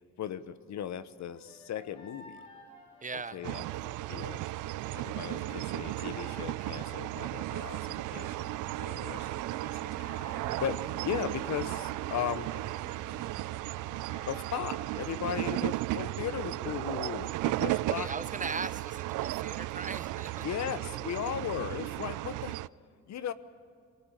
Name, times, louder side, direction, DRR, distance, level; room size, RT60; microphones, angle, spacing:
voice 1, 0.2-2.5 3.1-4.5 4.8-9.3 9.6-9.9 10.6-12.5 14.3-18.1 20.4-22.6 23.1-23.3, left 9 dB, 65° left, 14 dB, 1.1 m, -37 dB
sound 1, 1.2-7.4 9.2-15.4, left 1 dB, 85° left, 6.9 m, -55 dB
voice 2, 3.0-3.4 17.8-20.5, right 4 dB, 25° right, 13 dB, 1.0 m, -38 dB
sound 2, 3.4-22.7, right 18 dB, 85° right, 0.5 m, -35 dB
sound 3, 7.4-13.6, right 7 dB, 60° right, 1.9 m, -47 dB
23.5 x 18.5 x 9.1 m, 2.4 s
cardioid pair, 90°, 30 cm